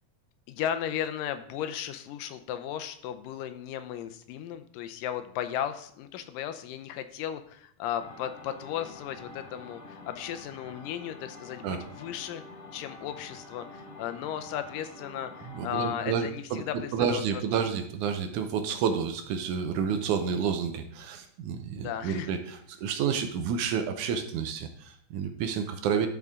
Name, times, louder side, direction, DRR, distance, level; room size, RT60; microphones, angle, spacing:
voice 1, 0.5-12.4 12.7-17.6 21.7-22.3, left 10 dB, 90° left, 10 dB, 2.4 m, -35 dB
sound 1, 8.0-16.0, left 3 dB, 65° left, 0.8 m, -47 dB
voice 2, 15.5-16.6 16.9-26.1, right 7 dB, 75° right, 7 dB, 2.1 m, -30 dB
12.5 x 5.2 x 3.6 m, 0.63 s
omnidirectional pair, 3.8 m